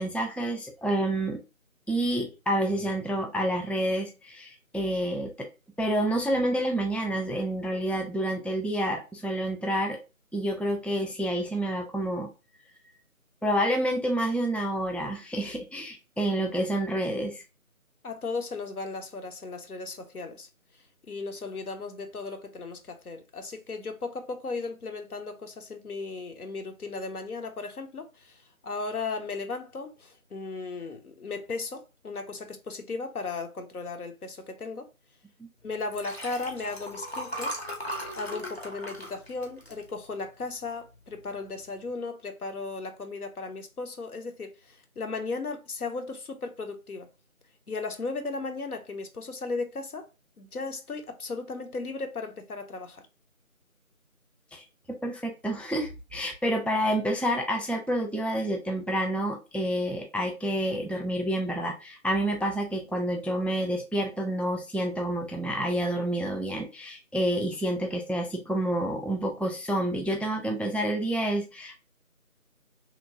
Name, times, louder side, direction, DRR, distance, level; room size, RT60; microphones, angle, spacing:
voice 1, 0.0-1.4 1.9-5.5 5.8-10.0 10.3-12.3 13.4-17.4 54.5-71.7, right 1 dB, 5° left, 0.3 m, -28 dB
voice 2, 18.0-20.5 21.1-34.9 35.6-37.6 38.1-47.1 47.7-50.1 50.4-53.0, left 3 dB, 85° left, 0.8 m, -36 dB
Liquid, 35.8-40.4 40.9-41.2 41.5-41.6, equal, 45° left, 0.6 m, -37 dB
2.9 x 2.2 x 2.6 m
figure-of-eight pair, 180°, 43 cm